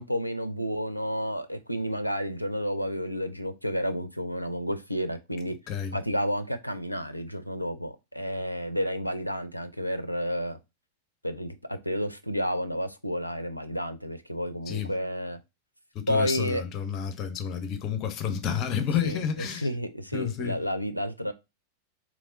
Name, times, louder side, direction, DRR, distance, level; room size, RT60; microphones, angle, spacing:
voice 1, 0.0-5.5 5.9-10.6 11.2-15.4 16.1-16.6 19.0-19.2 19.6-21.3, equal, 90° left, 0.4 m, -31 dB
voice 2, 5.7-6.0 14.7-14.9 15.9-19.7 20.1-20.6, left 8 dB, 35° left, 0.6 m, -30 dB
3.4 x 3.0 x 2.6 m
figure-of-eight pair, 90°, 0 cm